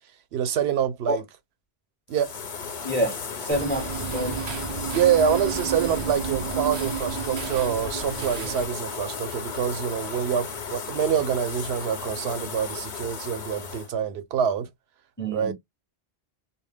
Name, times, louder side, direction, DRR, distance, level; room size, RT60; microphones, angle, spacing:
voice 1, 0.3-1.2 2.1-2.3 4.9-14.7 15.3-15.5, right 8 dB, 85° right, 0.8 m, -26 dB
sound 1, 2.1-13.9, left 5 dB, 55° left, 0.7 m, -35 dB
voice 2, 2.8-4.4 15.2-15.5, equal, 15° left, 0.4 m, -28 dB
sound 2, 3.5-8.6, right 7 dB, 50° right, 0.5 m, -32 dB
2.2 x 2.0 x 3.3 m
omnidirectional pair, 1.0 m